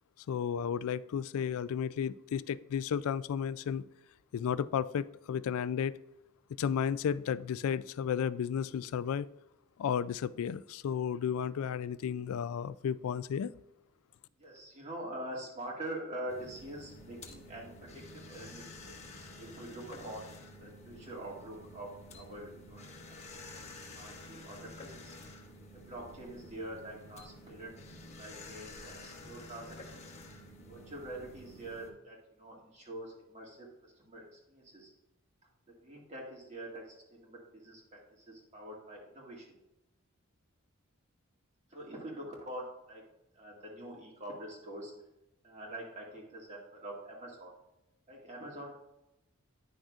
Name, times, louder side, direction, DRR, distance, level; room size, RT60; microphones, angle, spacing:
voice 1, 0.3-3.8 4.3-5.9 6.6-9.3 9.8-13.5, left 8 dB, 75° left, 19 dB, 0.3 m, -33 dB
voice 2, 14.4-20.3 20.6-23.6 23.9-25.1 25.7-27.8 28.2-30.1 30.7-34.9 35.8-39.6 41.7-43.0 43.4-44.9 45.4-47.5 48.1-48.7, right 1 dB, 30° right, -2 dB, 1.9 m, -45 dB
sound 1, 16.3-31.9, left 1 dB, 30° left, 0.9 m, -50 dB
9.9 x 6.2 x 2.4 m, 0.92 s
head